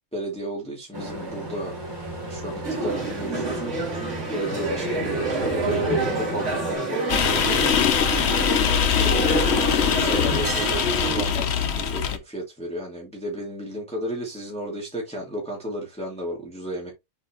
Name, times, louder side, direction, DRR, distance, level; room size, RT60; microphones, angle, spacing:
voice 1, 0.1-1.8 2.3-3.6 4.3-8.4 9.0-9.5 9.8-10.7 11.1-16.9, equal, 5° left, 2.4 m, -33 dB
sound 1, 0.9-6.8, right 1 dB, 15° right, 3.0 m, -34 dB
sound 2, 2.6-11.2, right 3 dB, 40° right, 2.9 m, -28 dB
sound 3, 7.1-12.2, left 7 dB, 55° left, 0.7 m, -22 dB
7.8 x 4.7 x 3.0 m
omnidirectional pair, 2.0 m